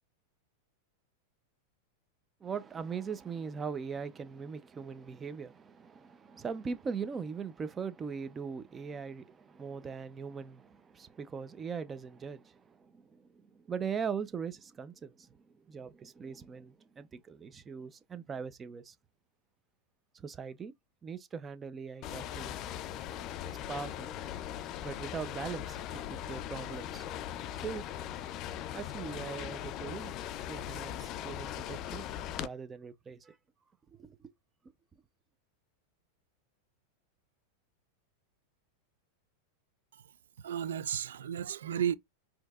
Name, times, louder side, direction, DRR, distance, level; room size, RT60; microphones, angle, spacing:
voice 1, 2.4-18.9 20.1-20.7 21.0-22.5 23.7-24.1 24.8-27.0 27.5-27.8 28.7-30.1 30.5-32.0 32.4-33.4 33.9-34.2, right 6 dB, 20° right, 0.4 m, -40 dB
sound 1, 22.0-32.5, left 11 dB, 40° left, 0.3 m, -40 dB
voice 2, 40.4-41.9, right 9 dB, 90° right, 0.3 m, -33 dB
4.4 x 2.7 x 2.3 m
supercardioid pair, 130°, 0 cm